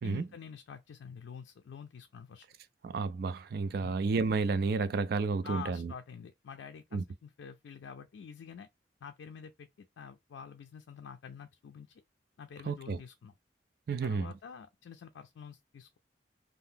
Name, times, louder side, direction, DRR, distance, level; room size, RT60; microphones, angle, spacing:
voice 1, 0.0-2.5 3.8-3.9 5.4-8.7 9.0-11.9 12.4-13.3 14.0-16.0, left 6 dB, 85° left, 0.3 m, -47 dB
voice 2, 2.8-5.9 6.9-7.0 12.7-13.0 13.9-14.3, right 4 dB, 55° right, 0.3 m, -31 dB
2.7 x 2.0 x 3.5 m
head